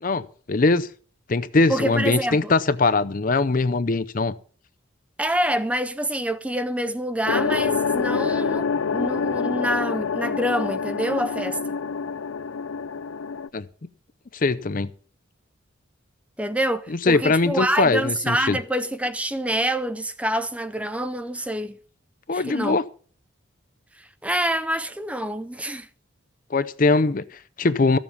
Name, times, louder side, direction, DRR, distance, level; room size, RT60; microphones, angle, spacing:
voice 1, 0.0-0.9 1.3-4.3 13.5-13.7 14.3-14.9 16.9-18.6 22.3-22.8 26.5-28.0, left 3 dB, 40° left, 0.5 m, -21 dB
voice 2, 1.7-2.5 5.2-11.8 16.4-21.8 22.3-22.8 24.0-25.9, right 1 dB, 5° right, 0.5 m, -26 dB
sound 1, 7.3-13.5, left 5 dB, 85° left, 0.5 m, -26 dB
14.5 x 7.2 x 6.8 m
head